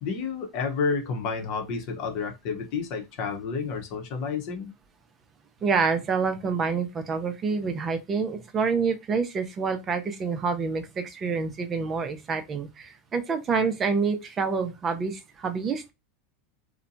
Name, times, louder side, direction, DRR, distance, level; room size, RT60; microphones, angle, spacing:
voice 1, 0.0-4.7, left 5 dB, 55° left, 0.8 m, -30 dB
voice 2, 5.6-15.9, right 5 dB, 30° right, 0.5 m, -27 dB
2.7 x 2.1 x 2.5 m
hypercardioid pair, 110°, 0 cm